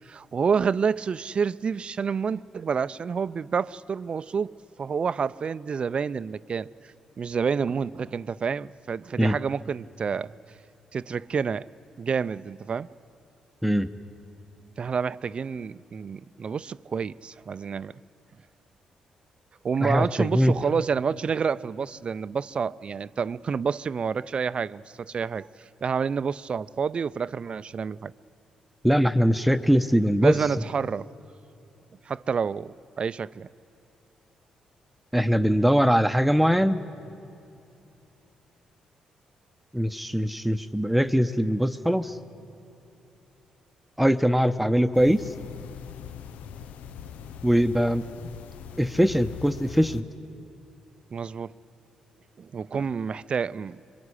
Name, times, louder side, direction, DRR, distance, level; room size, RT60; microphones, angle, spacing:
voice 1, 0.1-6.7 7.2-10.3 10.9-11.7 12.0-12.9 14.8-17.9 19.6-25.5 25.8-28.1 30.2-31.1 32.1-33.5 51.1-51.5 52.4-53.8, right 6 dB, 50° right, 0.5 m, -28 dB
voice 2, 19.8-20.5 28.8-30.4 35.1-36.8 39.7-42.2 44.0-45.3 47.4-48.0 48.8-50.0, equal, 5° right, 0.9 m, -22 dB
sound 1, 44.9-50.0, left 9 dB, 80° left, 0.6 m, -41 dB
24.0 x 20.5 x 10.0 m
supercardioid pair, 55°, 2 cm